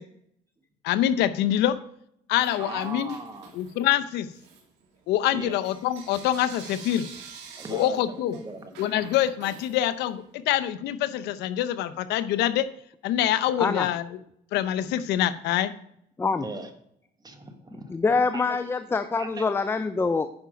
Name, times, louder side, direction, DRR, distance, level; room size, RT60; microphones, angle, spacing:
voice 1, 0.8-1.7 2.3-3.2 3.5-4.3 5.1-7.0 7.7-8.4 8.8-12.7 13.0-14.0 14.5-15.7, left 12 dB, 85° left, 12 dB, 0.7 m, -25 dB
Bell / Coin (dropping), 2.4-3.9 4.3-10.3, right 5 dB, 90° right, 2.3 m, -47 dB
voice 2, 2.6-3.5 5.3-5.6 7.6-8.9 14.8-15.0 16.4-16.7 17.2-18.0 18.3-18.6 19.2-19.4, right 3 dB, 25° right, 7 dB, 1.4 m, -39 dB
voice 3, 17.9-20.3, left 4 dB, 15° left, 11 dB, 0.5 m, -25 dB
9.7 x 5.7 x 5.1 m, 0.70 s
cardioid pair, 110°, 17 cm